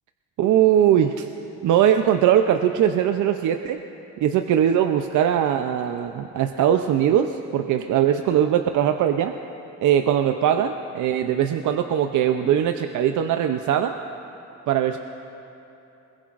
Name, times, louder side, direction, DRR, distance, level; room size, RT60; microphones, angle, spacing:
voice 1, 0.4-1.3 1.6-3.8 4.2-9.3 9.8-13.9 14.7-15.0, right 10 dB, 80° right, 6 dB, 0.6 m, -20 dB
21.5 x 20.5 x 2.5 m, 3.0 s
cardioid pair, 90°, 30 cm